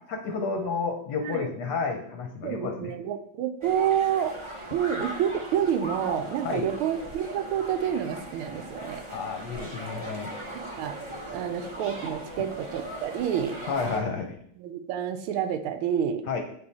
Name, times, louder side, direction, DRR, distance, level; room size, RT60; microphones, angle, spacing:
voice 1, 0.1-2.9 6.4-6.7 9.1-10.4 13.7-14.4 16.3-16.4, left 4 dB, 65° left, 3 dB, 1.1 m, -31 dB
voice 2, 2.4-4.4 4.7-9.0 10.5-11.0 11.3-13.6 14.6-16.2, right 9 dB, 80° right, 7 dB, 1.5 m, -28 dB
sound 1, 3.6-14.0, right 1 dB, 35° right, 0.4 m, -39 dB
7.8 x 3.8 x 4.1 m, 0.67 s
omnidirectional pair, 2.4 m